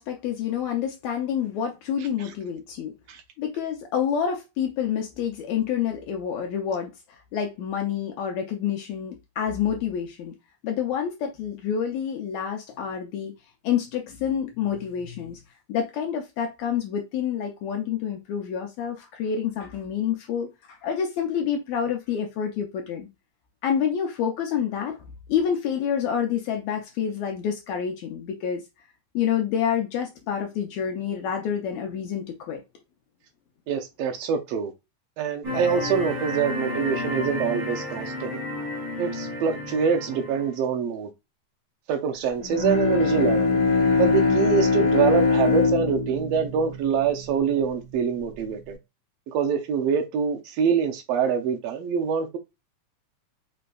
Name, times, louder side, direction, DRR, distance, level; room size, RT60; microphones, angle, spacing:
voice 1, 0.0-2.9 3.4-10.3 10.6-13.3 13.6-15.4 15.7-23.1 23.6-25.0 25.3-28.6 29.1-32.6, left 8 dB, 75° left, 1.8 m, -28 dB
voice 2, 33.7-34.7 35.2-38.4 39.0-41.1 41.9-43.5 44.0-48.8 49.3-52.4, right 7 dB, 85° right, 1.4 m, -25 dB
sound 1, 35.4-40.5, left 2 dB, 50° right, 2.1 m, -31 dB
Bowed string instrument, 42.4-47.8, left 4 dB, 35° left, 1.4 m, -22 dB
5.1 x 3.3 x 2.3 m
omnidirectional pair, 3.5 m